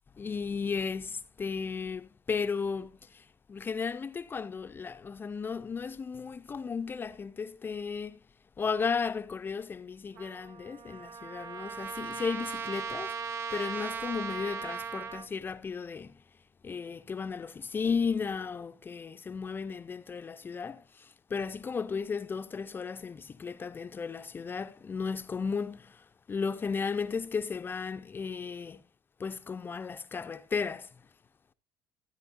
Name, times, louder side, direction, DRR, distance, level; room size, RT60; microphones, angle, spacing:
voice 1, 0.2-8.2 8.6-13.2 13.5-16.1 16.6-28.8 29.2-30.9, left 5 dB, 25° left, 0.5 m, -35 dB
Trumpet, 10.2-15.3, right 6 dB, 85° right, 0.8 m, -38 dB
15.0 x 10.0 x 2.6 m
cardioid pair, 115°, 9 cm